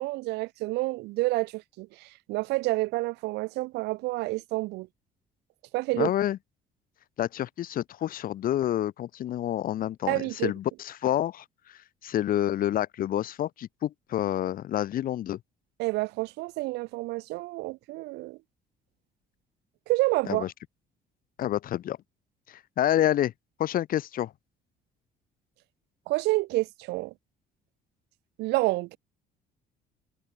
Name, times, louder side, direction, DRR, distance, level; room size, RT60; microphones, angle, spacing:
voice 1, 0.0-4.9 5.7-6.1 10.1-10.5 15.8-18.4 19.9-20.4 26.1-27.1 28.4-29.0, right 21 dB, 85° right, 0.4 m, -29 dB
voice 2, 5.9-6.4 7.2-15.4 20.2-20.5 21.4-22.0 22.5-23.3 23.6-24.3, left 12 dB, 55° left, 1.1 m, -28 dB
cardioid pair, 110°, 17 cm